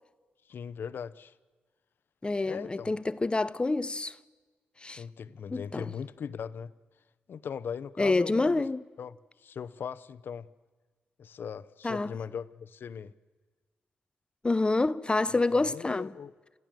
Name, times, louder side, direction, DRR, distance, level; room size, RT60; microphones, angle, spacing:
voice 1, 0.5-1.3 2.5-2.9 5.0-6.7 7.3-8.6 9.0-10.5 11.2-13.1 15.5-16.3, left 7 dB, 65° left, 0.8 m, -39 dB
voice 2, 2.2-4.2 4.8-5.0 5.5-5.9 8.0-8.8 11.8-12.1 14.4-16.1, left 3 dB, 25° left, 0.7 m, -27 dB
28.5 x 15.5 x 7.6 m
supercardioid pair, 55°, 4 cm